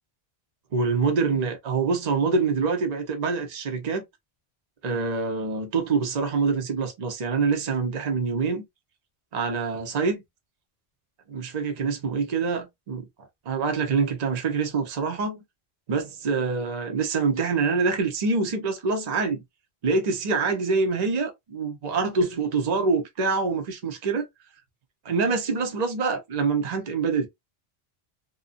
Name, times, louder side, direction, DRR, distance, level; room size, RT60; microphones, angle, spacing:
voice 1, 0.7-4.0 4.8-8.6 9.3-10.2 11.3-13.1 13.5-15.4 15.9-19.4 19.8-24.2 25.0-27.3, right 4 dB, 45° right, 0.8 m, -25 dB
2.5 x 2.3 x 2.5 m
omnidirectional pair, 1.0 m